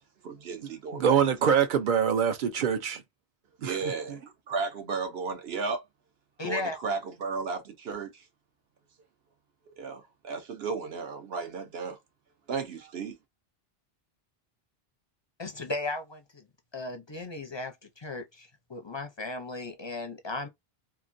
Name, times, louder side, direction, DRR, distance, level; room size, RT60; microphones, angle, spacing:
voice 1, 0.2-1.5 3.6-4.2 4.5-5.8 6.4-8.2 9.8-12.0 12.5-13.2, right 4 dB, 75° right, 1.0 m, -34 dB
voice 2, 0.9-3.0 3.6-3.7, right 7 dB, 60° right, 0.7 m, -24 dB
voice 3, 6.4-6.8 15.4-16.5 16.7-20.5, left 2 dB, 35° left, 0.4 m, -36 dB
2.9 x 2.5 x 2.5 m
omnidirectional pair, 1.1 m